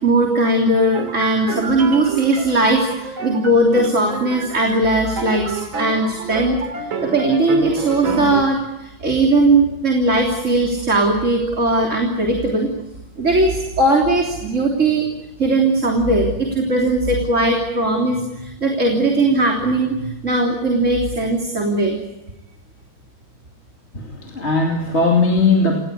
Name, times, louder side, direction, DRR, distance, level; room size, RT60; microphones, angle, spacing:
voice 1, 0.0-12.7 13.2-15.1 15.4-22.0, right 2 dB, 35° right, 1 dB, 3.6 m, -18 dB
sound 1, 0.9-8.4, right 4 dB, 75° right, 3.3 m, -29 dB
voice 2, 23.9-25.8, left 3 dB, 35° left, 1 dB, 2.8 m, -18 dB
29.0 x 19.0 x 8.4 m, 0.97 s
omnidirectional pair, 2.2 m